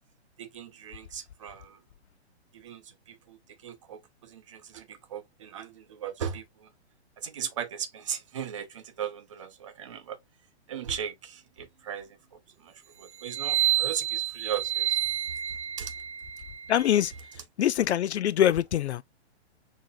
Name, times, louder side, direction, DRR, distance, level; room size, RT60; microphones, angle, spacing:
voice 1, 0.4-1.8 2.5-3.4 3.6-6.7 7.2-10.2 10.7-15.0 15.8-15.9 17.3-17.4, right 8 dB, 30° right, 0.7 m, -38 dB
sound 1, 13.2-17.3, right 13 dB, 85° right, 0.9 m, -30 dB
voice 2, 16.7-17.1 17.6-19.0, left 11 dB, 75° left, 0.5 m, -24 dB
6.3 x 3.0 x 2.5 m
hypercardioid pair, 175°, 33 cm